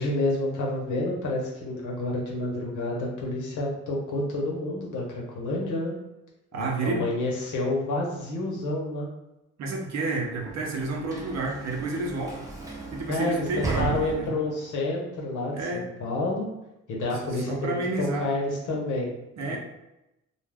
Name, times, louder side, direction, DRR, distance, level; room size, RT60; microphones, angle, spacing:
voice 1, 0.0-5.9 6.6-9.1 13.1-16.5 16.9-19.6, left 2 dB, 80° left, -2 dB, 0.9 m, -29 dB
voice 2, 6.5-7.1 9.6-12.4 12.9-14.3 15.5-15.8 17.5-18.3 19.4-19.6, right 3 dB, 60° right, 1 dB, 0.7 m, -30 dB
Sliding door / Slam, 9.9-14.7, right 3 dB, 10° right, 0.8 m, -36 dB
2.4 x 2.2 x 3.3 m, 0.91 s
cardioid pair, 90°, 30 cm